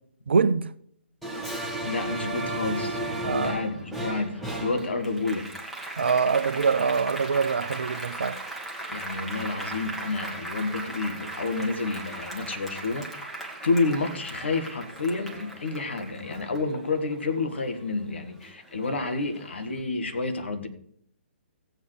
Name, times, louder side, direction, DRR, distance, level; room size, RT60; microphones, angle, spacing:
voice 1, 0.3-0.7 3.2-3.6 6.0-8.4, right 5 dB, 65° right, 0.6 m, -24 dB
Applause, 1.2-18.0 18.4-19.6, right 2 dB, ahead, 1.5 m, -36 dB
voice 2, 1.8-5.5 8.9-13.3 13.6-20.7, left 3 dB, 65° left, 1.7 m, -29 dB
16.5 x 8.0 x 3.3 m
figure-of-eight pair, 130°, 6 cm